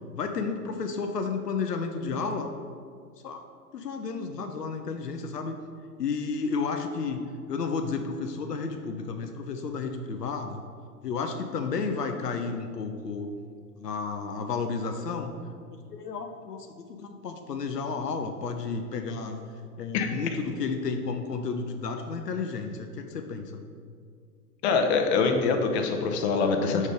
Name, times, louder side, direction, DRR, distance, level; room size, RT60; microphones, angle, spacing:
voice 1, 0.1-2.5 3.2-3.4 3.7-5.5 6.0-10.6 11.0-13.3 13.8-15.4 15.7-19.4 19.8-23.6, left 4 dB, 80° left, 5 dB, 0.6 m, -32 dB
voice 2, 24.6-26.9, left 4 dB, 45° left, 5 dB, 0.7 m, -24 dB
5.1 x 4.2 x 5.0 m, 2.1 s
figure-of-eight pair, 100°, 47 cm